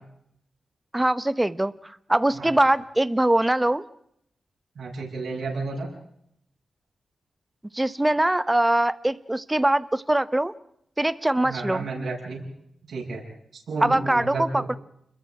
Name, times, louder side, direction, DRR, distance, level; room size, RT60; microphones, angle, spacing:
voice 1, 0.9-3.8 7.7-10.5 11.0-11.9 13.8-14.8, right 1 dB, 10° right, 14 dB, 0.9 m, -22 dB
voice 2, 4.8-5.9 11.4-12.4 12.9-13.2 13.5-14.6, right 3 dB, 75° right, -4 dB, 8.0 m, -32 dB
29.5 x 22.0 x 4.9 m, 0.73 s
wide cardioid pair, 140°, 0 cm